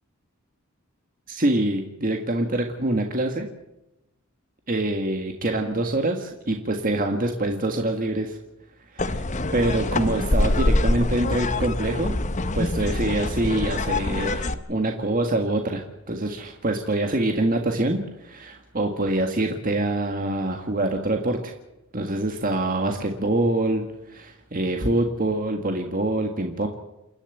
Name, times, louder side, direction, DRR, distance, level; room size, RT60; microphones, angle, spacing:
voice 1, 1.3-3.5 4.7-8.4 8.9-9.2 9.5-12.2 12.5-21.5 21.9-26.7, right 1 dB, 40° right, 4 dB, 1.7 m, -25 dB
sound 1, 9.0-14.5, left 2 dB, 35° left, 1.0 m, -25 dB
28.0 x 11.5 x 9.1 m, 0.92 s
head